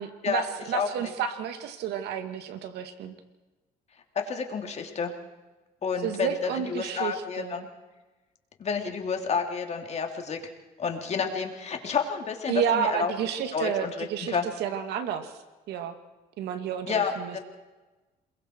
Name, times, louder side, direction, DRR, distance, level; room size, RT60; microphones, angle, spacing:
voice 1, 0.0-3.1 6.0-7.7 12.5-15.3 15.7-15.9 16.4-17.4, right 8 dB, 80° right, 8 dB, 2.3 m, -31 dB
voice 2, 0.7-1.1 4.1-5.1 5.8-7.7 8.6-10.4 10.8-13.1 13.5-14.5 16.9-17.4, left 6 dB, 40° left, 3 dB, 3.2 m, -30 dB
28.0 x 21.5 x 4.7 m, 1.2 s
cardioid pair, 110°, 17 cm